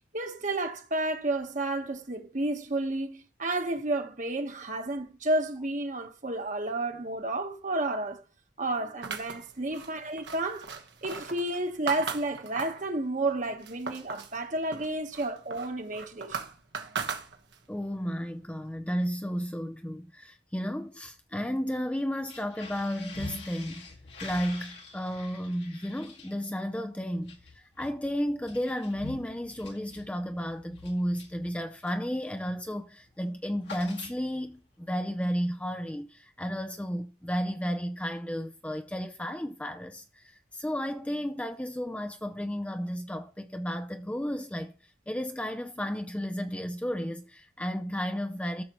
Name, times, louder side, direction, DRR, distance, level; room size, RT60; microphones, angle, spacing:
voice 1, 0.1-8.2 8.6-10.7 11.0-16.5, right 2 dB, 45° right, 1.2 m, -31 dB
sound 1, 9.0-12.9 13.3-14.4 14.7-17.7, right 5 dB, 75° right, 1.3 m, -38 dB
voice 2, 17.7-23.9 24.2-48.6, equal, 5° left, 0.5 m, -33 dB
sound 2, 22.2-32.1 32.5-32.7 33.0-34.6, left 3 dB, 70° left, 2.0 m, -46 dB
13.5 x 6.6 x 3.0 m
head